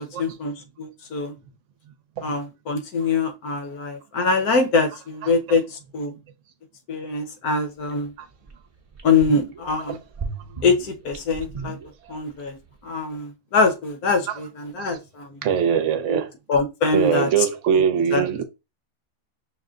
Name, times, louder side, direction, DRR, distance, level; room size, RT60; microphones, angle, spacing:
voice 1, 0.0-1.3 2.2-6.1 6.9-8.1 9.0-10.0 10.6-11.8 12.1-12.6 12.8-15.4 16.1-16.2 16.5-17.3 18.1-18.2, left 4 dB, 75° left, 1.5 m, -23 dB
voice 2, 5.2-5.6 8.2-8.3 9.9-10.0 12.1-12.2 14.3-14.4 14.8-14.9 15.4-16.3 16.9-18.4, right 8 dB, 60° right, 1.0 m, -22 dB
sound 1, 7.9-8.0 8.5-8.6 8.9-9.7 10.1-12.4 12.7-12.8, right 4 dB, 25° right, 0.8 m, -35 dB
6.1 x 2.1 x 3.7 m
omnidirectional pair, 1.6 m